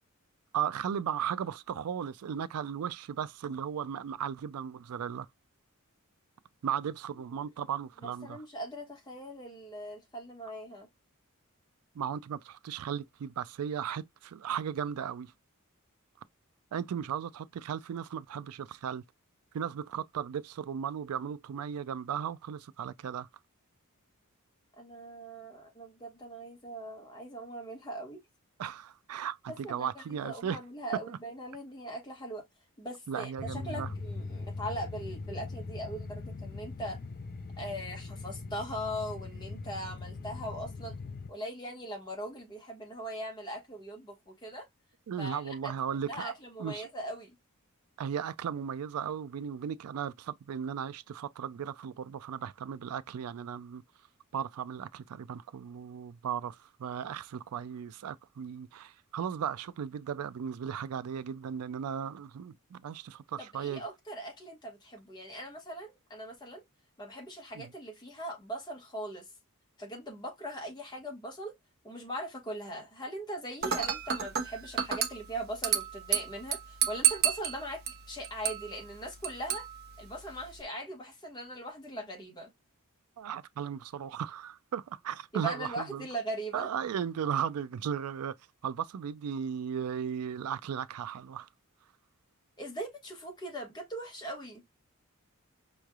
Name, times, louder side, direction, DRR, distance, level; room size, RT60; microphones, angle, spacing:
voice 1, 0.5-5.3 6.6-8.4 12.0-15.3 16.7-19.0 19.5-23.3 28.6-30.6 31.1-31.2 33.1-33.9 45.1-46.3 46.6-46.9 48.0-53.8 54.3-63.8 67.6-67.7 83.2-86.1 86.5-88.4 88.6-91.5, right 8 dB, 80° right, 0.4 m, -36 dB
voice 2, 8.0-10.9 24.8-28.2 29.6-32.4 32.8-37.0 37.6-41.0 41.3-44.7 45.2-45.7 46.1-47.4 63.4-66.6 67.0-69.3 69.8-71.6 71.8-79.7 80.0-82.5 85.3-86.7 92.6-94.6, right 1 dB, 20° left, 1.5 m, -40 dB
sound 1, 33.4-41.3, left 3 dB, 40° left, 0.4 m, -41 dB
Dishes pots and pans / Glass, 73.6-80.6, right 9 dB, 45° right, 0.8 m, -32 dB
5.4 x 3.2 x 2.3 m
head